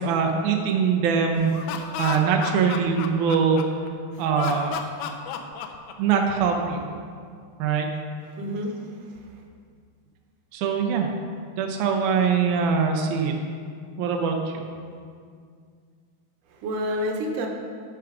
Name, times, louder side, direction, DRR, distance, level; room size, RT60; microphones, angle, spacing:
voice 1, 0.0-1.5 2.0-3.6 4.2-4.8 6.0-6.9 7.6-7.9 10.5-11.1 11.6-13.3 14.0-14.6, right 6 dB, 85° right, 2 dB, 1.7 m, -23 dB
Laughter, 1.4-3.9 4.4-6.4, left 8 dB, 80° left, 2.4 m, -33 dB
voice 2, 8.3-9.2 16.5-17.5, equal, 70° right, 1 dB, 2.1 m, -29 dB
12.0 x 5.9 x 5.0 m, 2.2 s
omnidirectional pair, 4.6 m